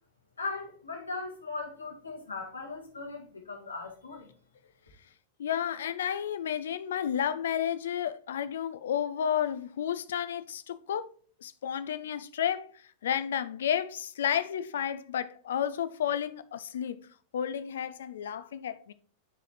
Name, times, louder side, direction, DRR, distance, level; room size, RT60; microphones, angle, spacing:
voice 1, 0.4-4.3, left 3 dB, 80° left, 1.6 m, -38 dB
voice 2, 5.4-11.1 11.4-12.7 13.0-17.0 17.3-18.9, left 9 dB, 60° left, 0.4 m, -31 dB
9.3 x 4.1 x 3.2 m
figure-of-eight pair, 90°, 0 cm